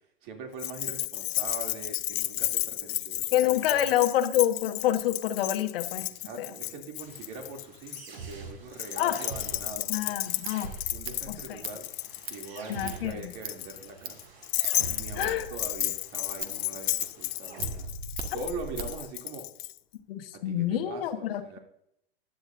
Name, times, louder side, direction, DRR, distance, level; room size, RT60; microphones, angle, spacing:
voice 1, 0.2-3.9 6.1-10.2 10.9-11.9 12.2-14.2 14.9-17.9 18.3-19.5 20.4-21.6, right 3 dB, 50° right, 2 dB, 2.9 m, -42 dB
Keys jangling, 0.6-8.0 8.7-19.7, left 20 dB, 45° left, 0.6 m, -33 dB
voice 2, 3.3-6.1 6.4-6.5 9.0-9.2 9.9-10.7 11.3-11.6 12.7-13.3 15.2-15.5 20.1-21.6, left 12 dB, 65° left, 8 dB, 1.3 m, -27 dB
sound 1, 7.0-19.0, right 3 dB, 75° right, 5.3 m, -44 dB
Scissors, 10.1-19.1, right 6 dB, 30° right, 1.6 m, -43 dB
15.0 x 10.5 x 2.7 m, 0.74 s
hypercardioid pair, 120°, 31 cm